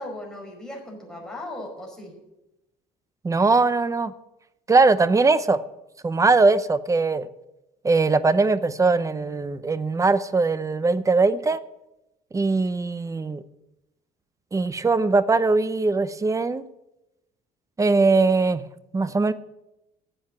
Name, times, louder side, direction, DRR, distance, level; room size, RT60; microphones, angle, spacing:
voice 1, 0.0-2.1, left 1 dB, 5° left, 4.9 m, -37 dB
voice 2, 3.2-4.1 4.7-5.6 6.0-7.3 7.8-11.6 12.3-13.4 14.5-16.6 17.8-18.6 18.9-19.3, right 3 dB, 20° right, 0.7 m, -20 dB
10.0 x 8.0 x 8.8 m
cardioid pair, 110°, 17 cm